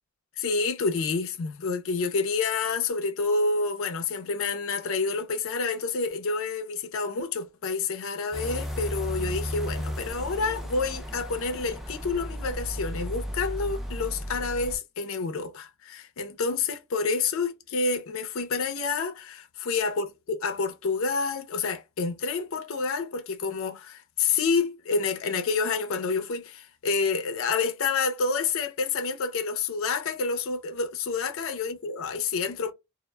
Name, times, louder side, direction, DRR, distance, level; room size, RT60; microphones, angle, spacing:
voice 1, 0.4-32.7, left 4 dB, 65° left, 0.5 m, -28 dB
sound 1, 8.3-14.8, equal, ahead, 0.3 m, -34 dB
2.1 x 2.0 x 3.1 m
head